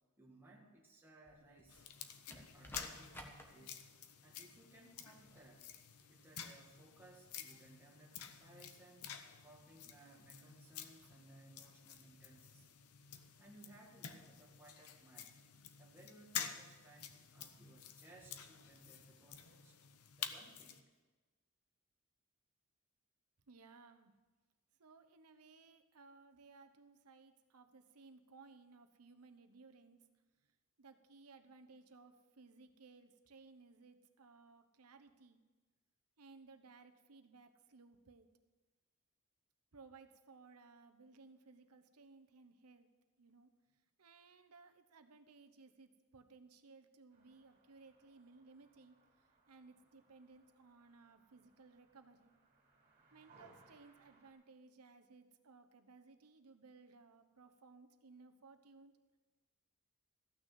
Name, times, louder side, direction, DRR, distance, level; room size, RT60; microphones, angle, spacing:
voice 1, 0.2-1.8 2.3-3.9 4.2-5.7 6.1-9.1 9.4-13.1 13.4-15.4 15.8-19.7 20.2-20.9, right 2 dB, 10° right, -3 dB, 1.6 m, -62 dB
sound 1, 1.2-1.9 2.3-3.4 5.2-5.5, equal, 10° left, 1.3 m, -54 dB
sound 2, 1.7-20.8, left 8 dB, 75° left, 0.8 m, -50 dB
voice 2, 23.5-24.1 24.8-30.0 30.8-35.4 36.2-38.3 39.7-42.9 43.2-43.5 44.0-52.3 53.1-58.9, right 4 dB, 85° right, 8 dB, 1.0 m, -61 dB
sound 3, 47.1-54.3, right 3 dB, 40° right, 3.1 m, -69 dB
14.5 x 6.4 x 7.5 m, 1.2 s
head